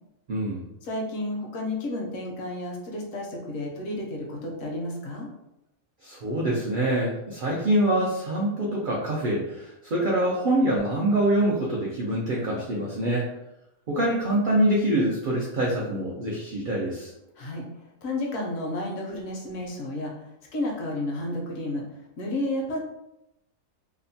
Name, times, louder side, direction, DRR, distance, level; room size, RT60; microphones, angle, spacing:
voice 1, 0.3-0.6 6.0-13.3 13.9-17.1, right 1 dB, 75° right, -4 dB, 0.4 m, -25 dB
voice 2, 0.8-5.3 17.4-17.6 18.0-20.2 20.5-21.8 22.2-22.8, left 1 dB, 70° left, -1 dB, 1.0 m, -31 dB
2.8 x 2.1 x 2.6 m, 0.88 s
omnidirectional pair, 1.4 m